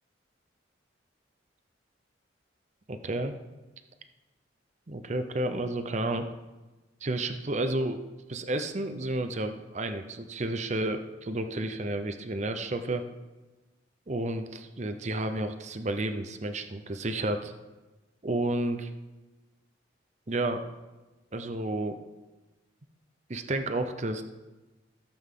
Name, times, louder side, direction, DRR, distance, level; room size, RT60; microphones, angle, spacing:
voice 1, 2.9-3.4 4.9-6.3 7.0-8.0 8.3-13.0 14.1-17.5 18.2-18.9 20.3-20.6 21.3-22.0 23.3-24.2, right 2 dB, 35° right, 8 dB, 0.7 m, -31 dB
16.0 x 7.8 x 3.7 m, 1.1 s
head